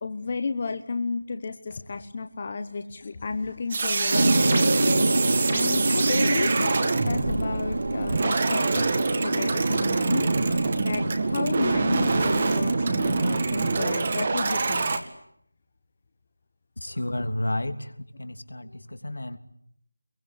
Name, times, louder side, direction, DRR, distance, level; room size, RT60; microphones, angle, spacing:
voice 1, 0.0-8.9 9.2-10.3 10.7-14.8, left 4 dB, 20° left, 8 dB, 1.0 m, -32 dB
sound 1, 3.7-15.0, right 3 dB, 25° right, 1.8 m, -26 dB
sound 2, 4.1-14.8, right 2 dB, 50° right, 3.3 m, -27 dB
voice 2, 16.8-17.9 18.2-19.4, left 1 dB, 80° left, 8 dB, 2.9 m, -31 dB
26.0 x 23.0 x 9.6 m, 0.71 s
figure-of-eight pair, 175°, 0 cm